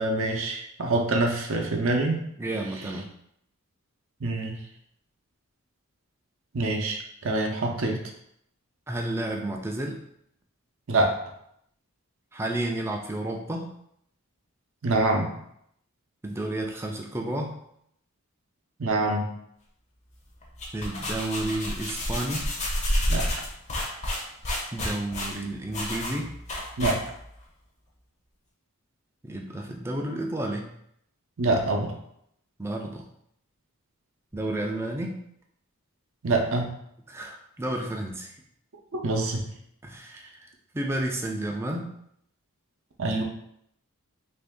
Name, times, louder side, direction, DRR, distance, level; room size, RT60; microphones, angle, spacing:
voice 1, 0.0-2.2 4.2-4.6 6.5-8.0 10.9-11.1 14.8-15.3 18.8-19.3 23.1-23.3 26.8-27.0 31.4-31.9 36.2-36.7 38.9-39.5 43.0-43.2, right 2 dB, 60° right, 2 dB, 0.6 m, -25 dB
voice 2, 2.4-3.1 8.9-10.0 12.3-13.7 16.2-17.6 20.7-22.6 24.7-26.4 29.2-30.7 32.6-33.1 34.3-35.2 37.1-38.3 39.8-40.5 40.7-41.9, right 1 dB, 10° right, 1 dB, 0.3 m, -31 dB
sound 1, 20.4-27.4, left 1 dB, 30° left, 0.6 m, -30 dB
3.0 x 2.6 x 3.5 m, 0.73 s
head